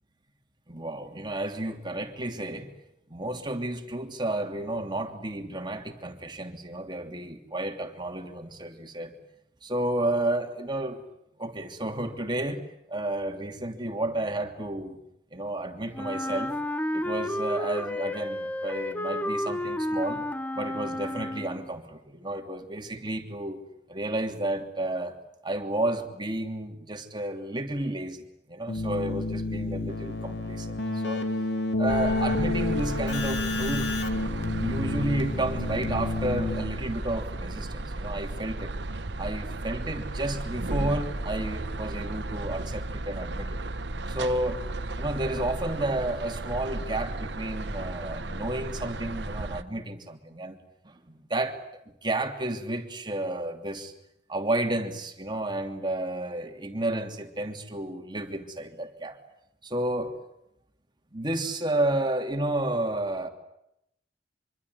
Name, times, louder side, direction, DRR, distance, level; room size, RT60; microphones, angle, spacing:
voice 1, 0.7-2.7 3.1-9.1 9.6-11.0 11.4-12.6 12.9-15.0 15.3-16.5 16.9-20.2 20.5-23.6 23.9-25.2 25.4-28.2 28.5-30.7 31.0-31.3 31.8-33.9 34.6-38.7 39.2-43.6 44.1-44.6 45.0-50.6 50.8-51.6 52.0-53.9 54.3-59.2 59.6-60.2 61.1-63.3, right 1 dB, 25° right, 4 dB, 2.9 m, -31 dB
Wind instrument woodwind instrument, 15.9-21.7, left 1 dB, 10° left, 1.0 m, -31 dB
Keyboard (musical), 28.7-37.0, left 2 dB, 75° left, 2.8 m, -30 dB
sound 1, 31.9-49.6, right 2 dB, 75° right, 1.2 m, -34 dB
25.0 x 24.5 x 9.7 m, 0.82 s
head